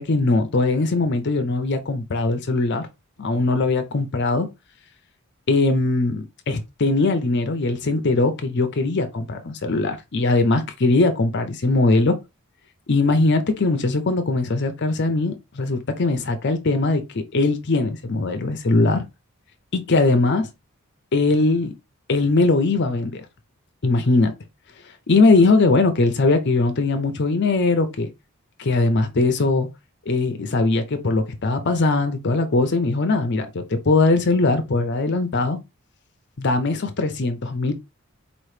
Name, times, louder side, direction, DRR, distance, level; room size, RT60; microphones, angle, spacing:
voice 1, 0.0-2.9 3.2-4.5 5.5-12.2 12.9-19.0 19.7-20.5 21.1-21.7 22.1-23.2 23.8-24.3 25.1-28.1 28.6-29.7 30.1-35.6 36.4-37.7, left 3 dB, 50° left, 0.6 m, -20 dB
4.4 x 3.0 x 3.3 m
head